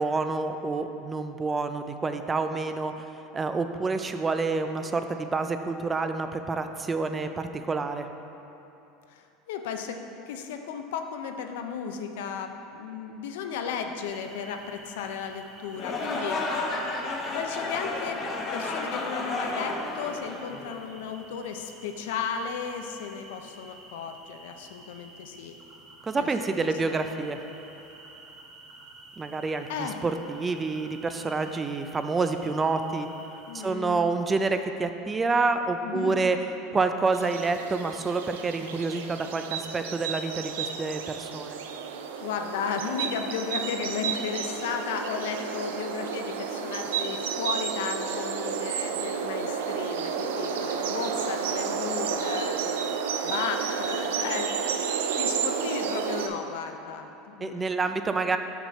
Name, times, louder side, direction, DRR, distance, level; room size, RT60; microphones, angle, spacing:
voice 1, 0.0-3.1 3.3-8.1 26.0-27.4 29.2-33.1 33.6-36.4 36.7-41.6 57.4-58.4, right 3 dB, 20° right, 7 dB, 0.3 m, -28 dB
voice 2, 9.1-16.8 17.3-18.2 18.5-25.6 26.2-27.0 29.7-30.0 33.5-34.1 35.8-36.2 42.2-54.5 54.8-58.4, left 6 dB, 80° left, 6 dB, 0.5 m, -35 dB
sound 1, 14.0-33.7, right 2 dB, 35° right, 1.0 m, -50 dB
sound 2, 15.7-20.9, left 2 dB, 35° left, 0.8 m, -32 dB
sound 3, 37.1-56.3, right 6 dB, 90° right, 0.4 m, -31 dB
5.8 x 5.5 x 4.2 m, 2.9 s
supercardioid pair, 130°, 0 cm